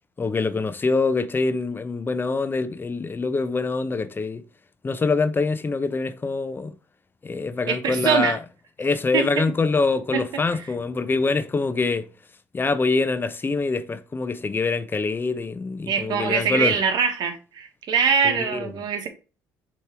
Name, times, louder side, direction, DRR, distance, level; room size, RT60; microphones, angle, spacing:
voice 1, 0.2-4.4 4.8-6.7 7.2-8.4 8.8-12.0 12.5-16.8 18.2-18.7, left 3 dB, 25° left, 0.7 m, -24 dB
voice 2, 7.7-8.4 9.1-9.4 10.1-10.2 15.9-19.1, right 6 dB, 60° right, 1.5 m, -23 dB
6.7 x 3.2 x 4.4 m
supercardioid pair, 70°, 8 cm